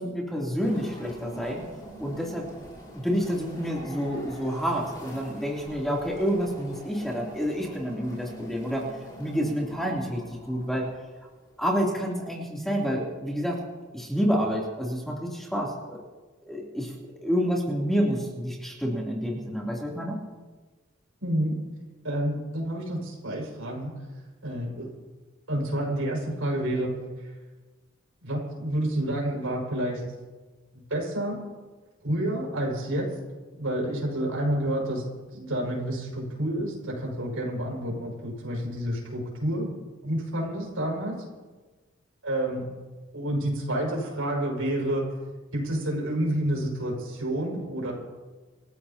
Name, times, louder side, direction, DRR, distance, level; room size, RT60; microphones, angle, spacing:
voice 1, 0.0-1.6 2.0-2.4 2.9-8.8 9.2-10.2 10.5-10.9 11.6-13.6 13.9-16.0 16.5-16.9 17.2-20.2, equal, ahead, -3 dB, 3.1 m, -28 dB
sound 1, 0.6-11.8, left 1 dB, 20° left, 4.1 m, -45 dB
voice 2, 21.2-21.5 22.0-23.9 24.4-24.9 25.5-26.9 27.2-27.3 28.2-30.0 30.7-31.4 32.0-33.1 33.5-35.0 35.3-39.7 40.0-41.2 42.2-42.6 43.1-45.0 45.5-47.9, right 1 dB, 90° right, -1 dB, 5.9 m, -29 dB
28.0 x 15.0 x 2.9 m, 1.3 s
head